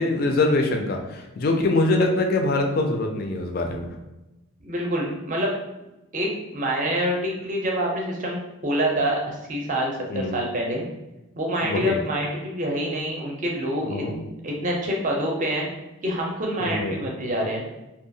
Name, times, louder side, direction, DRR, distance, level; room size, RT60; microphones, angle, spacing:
voice 1, 0.0-3.9 10.1-10.4 11.6-12.0 13.8-14.2 16.6-17.0, left 2 dB, 45° left, 3 dB, 0.3 m, -24 dB
voice 2, 4.6-5.5 6.1-10.9 11.4-14.0 14.4-15.7 16.0-17.6, equal, 35° right, -1 dB, 0.5 m, -26 dB
2.7 x 2.2 x 2.6 m, 0.99 s
head